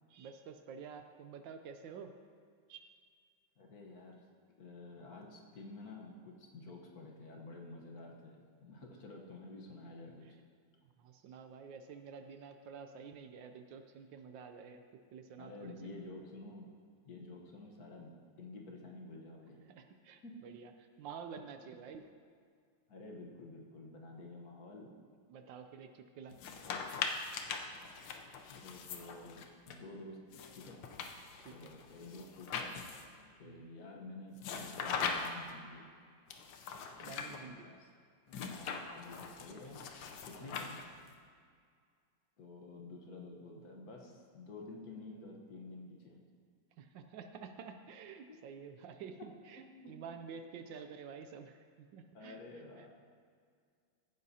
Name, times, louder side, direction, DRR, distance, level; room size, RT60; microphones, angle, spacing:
voice 1, 0.1-2.1 2.7-2.9 11.0-14.8 15.1-15.7 19.7-20.7 21.0-22.1 25.3-26.4 31.4-31.7 33.4-33.7 37.0-37.7 40.4-40.5 46.8-52.4 52.8-52.9, right 6 dB, 75° right, 7 dB, 1.2 m, -49 dB
voice 2, 3.6-4.2 4.6-10.3 15.4-16.7 17.0-19.6 20.2-20.4 22.9-24.9 28.5-30.2 30.5-30.8 31.5-32.9 33.2-35.8 37.2-37.9 38.5-39.8 40.2-40.8 42.4-46.2 48.3-48.4 49.5-49.9 52.1-52.9, left 2 dB, 55° left, 0 dB, 1.5 m, -50 dB
sound 1, 26.3-29.7 30.3-33.2 34.4-35.5 36.3-37.4 38.3-41.1, left 5 dB, 75° left, 1.5 m, -41 dB
16.0 x 9.5 x 2.8 m, 2.1 s
omnidirectional pair, 2.2 m